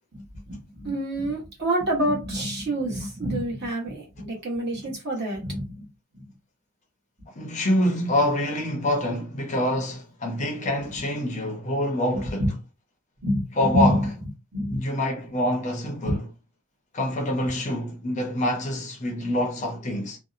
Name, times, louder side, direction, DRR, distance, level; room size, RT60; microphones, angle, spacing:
voice 1, 0.1-5.9 6.1-6.3 12.1-12.5 13.2-14.1 14.5-14.8 16.0-16.1, equal, 50° right, 1.0 m, -27 dB
voice 2, 7.3-12.4 13.6-14.0 14.7-16.2 16.9-20.2, left 1 dB, 30° left, 0.5 m, -26 dB
2.7 x 2.0 x 2.4 m
head